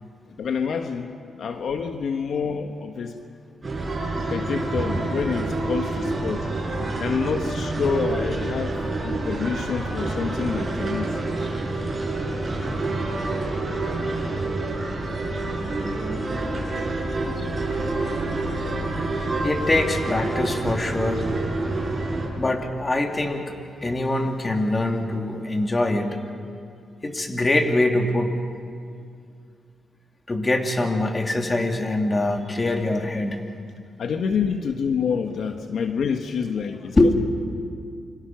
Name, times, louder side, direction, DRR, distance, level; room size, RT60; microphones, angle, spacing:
voice 1, 0.4-3.2 4.3-6.5 7.0-8.8 9.0-11.2 15.9-16.0 34.0-37.1, left 6 dB, 70° left, 6 dB, 1.2 m, -27 dB
sound 1, 3.6-22.3, right 2 dB, 30° right, 7.6 m, -27 dB
voice 2, 19.4-21.3 22.4-26.2 27.0-28.4 30.3-33.4 37.0-37.1, left 2 dB, 25° left, 3 dB, 2.5 m, -23 dB
28.5 x 25.5 x 5.8 m, 2.3 s
cardioid pair, 105°, 0 cm